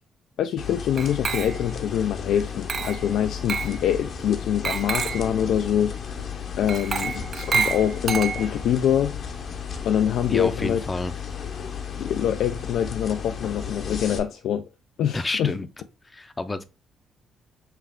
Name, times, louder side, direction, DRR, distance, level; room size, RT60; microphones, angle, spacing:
voice 1, 0.4-6.3 6.6-9.2 9.8-10.8 12.0-14.7 15.0-15.5, left 9 dB, 75° left, 0.3 m, -25 dB
sound 1, 0.6-14.2, left 7 dB, 60° left, 0.8 m, -34 dB
Glass, 1.0-1.8 2.7-3.1 3.5-3.8 4.6-5.3 6.7-8.7, right 6 dB, 45° right, 0.4 m, -28 dB
voice 2, 10.3-11.1 15.1-15.7 16.0-16.6, left 2 dB, 25° left, 0.5 m, -29 dB
5.6 x 2.4 x 3.6 m
cardioid pair, 90°, 0 cm